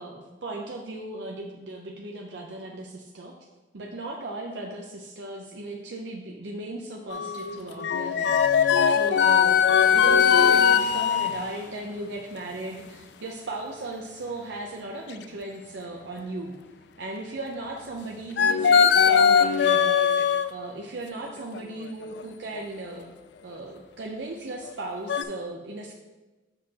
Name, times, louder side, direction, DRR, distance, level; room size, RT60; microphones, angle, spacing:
voice 1, 0.0-3.3 3.7-16.5 17.0-23.1 23.4-25.9, right 2 dB, 70° right, 0 dB, 0.6 m, -37 dB
sound 1, 7.1-11.3 18.4-20.5 21.5-21.6 22.0-22.2 22.5-22.6 24.7-24.8 25.1-25.2, left 7 dB, 65° left, 0.3 m, -20 dB
7.3 x 6.4 x 2.9 m, 1.1 s
head